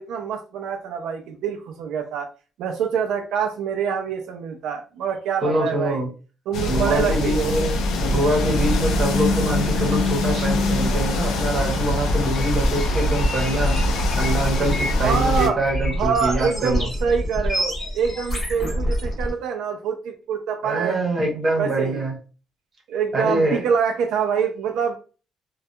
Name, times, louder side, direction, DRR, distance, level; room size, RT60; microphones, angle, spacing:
voice 1, 0.0-2.3 2.6-6.0 6.5-7.6 14.9-15.6 16.0-21.0 21.6-22.1 22.9-24.9, right 6 dB, 75° right, 4 dB, 0.3 m, -25 dB
voice 2, 5.4-6.1 6.6-13.8 14.2-16.9 20.6-22.2 23.1-23.6, right 1 dB, 25° right, -1 dB, 0.9 m, -24 dB
sound 1, 6.5-15.5, left 2 dB, 85° left, 0.5 m, -23 dB
sound 2, 12.3-19.3, equal, 25° left, 1.2 m, -26 dB
2.6 x 2.2 x 2.2 m, 0.35 s
cardioid pair, 175°, 0 cm